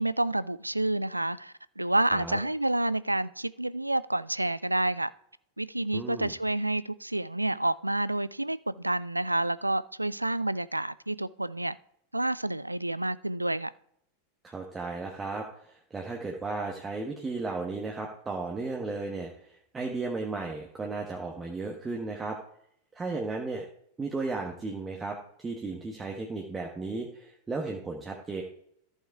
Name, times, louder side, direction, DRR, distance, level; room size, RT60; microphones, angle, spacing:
voice 1, 0.0-5.1 5.6-11.7 12.1-13.7, right 1 dB, 85° right, 0.3 m, -29 dB
voice 2, 2.1-2.4 5.9-6.3 14.4-22.4 22.9-23.6 24.0-28.4, right 3 dB, 15° right, 1.4 m, -35 dB
14.0 x 5.4 x 4.7 m
figure-of-eight pair, 90°, 0 cm